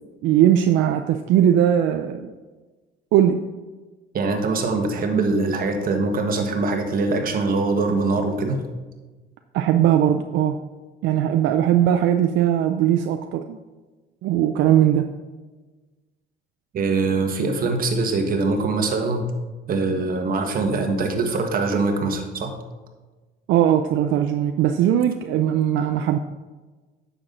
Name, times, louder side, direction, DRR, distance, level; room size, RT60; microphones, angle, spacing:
voice 1, 0.2-2.3 3.1-3.4 9.5-10.6 11.0-13.6 14.2-15.1 23.5-26.2, right 10 dB, 75° right, 6 dB, 0.5 m, -19 dB
voice 2, 4.1-8.6 16.7-19.3 19.7-22.5, right 3 dB, 45° right, 4 dB, 1.5 m, -23 dB
9.8 x 7.0 x 3.9 m, 1.3 s
cardioid pair, 110°, 20 cm